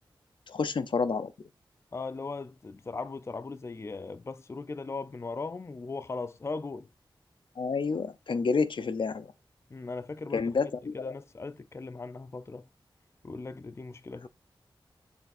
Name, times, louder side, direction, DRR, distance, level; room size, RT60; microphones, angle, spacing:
voice 1, 0.5-1.3 7.6-9.3 10.3-11.1, left 4 dB, 75° left, 0.6 m, -29 dB
voice 2, 1.9-6.9 9.7-10.5 10.9-12.7 13.2-14.3, left 3 dB, 30° left, 0.4 m, -38 dB
7.0 x 3.4 x 4.0 m
wide cardioid pair, 90°, 9 cm